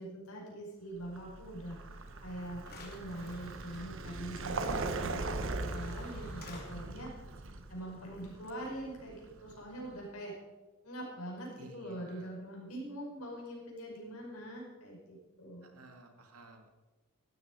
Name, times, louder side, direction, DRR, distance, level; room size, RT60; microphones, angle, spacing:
voice 1, 0.0-7.1 7.7-10.3 10.8-15.7, right 1 dB, 75° left, -2 dB, 5.5 m, -44 dB
Vehicle, 1.0-9.8, right 3 dB, 60° right, 1.0 m, -40 dB
sound 1, 2.1-2.2 2.6-3.9 5.2-5.3 5.6-6.7, left 3 dB, 45° left, 3.0 m, -53 dB
voice 2, 11.5-12.4 15.6-16.7, right 2 dB, 80° right, 4 dB, 2.2 m, -54 dB
15.5 x 12.5 x 4.9 m, 1.2 s
head